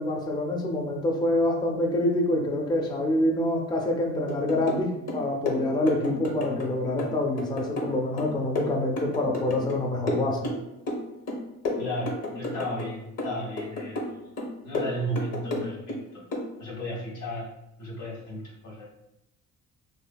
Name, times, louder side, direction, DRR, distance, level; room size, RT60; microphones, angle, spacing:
voice 1, 0.0-10.5, left 1 dB, 15° left, 1 dB, 0.4 m, -26 dB
sound 1, 4.3-4.8 5.1-6.7 7.0-9.8 10.1-11.0 11.3-12.9 13.2-14.1 14.4-16.0 16.3-16.5, left 2 dB, 55° left, 0.7 m, -31 dB
voice 2, 11.8-14.3 14.6-16.2 16.6-17.5 17.8-18.9, equal, 90° left, -4 dB, 1.0 m, -34 dB
2.7 x 2.5 x 2.2 m, 0.85 s
cardioid pair, 90°, 30 cm